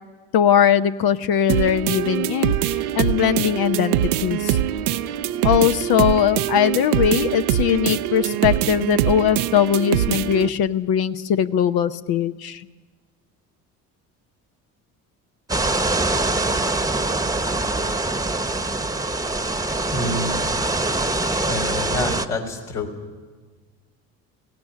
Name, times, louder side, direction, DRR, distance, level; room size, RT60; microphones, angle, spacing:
voice 1, 0.3-4.0 4.2-4.6 5.4-12.6, left 9 dB, 60° left, 11 dB, 0.8 m, -20 dB
sound 1, 1.5-10.5, right 11 dB, 90° right, 0.7 m, -23 dB
sound 2, 15.5-22.3, right 2 dB, 10° right, 1.1 m, -23 dB
voice 2, 19.9-20.3 21.4-22.9, left 2 dB, 80° left, -1 dB, 3.8 m, -27 dB
17.0 x 16.5 x 9.7 m, 1.4 s
hypercardioid pair, 60°, 43 cm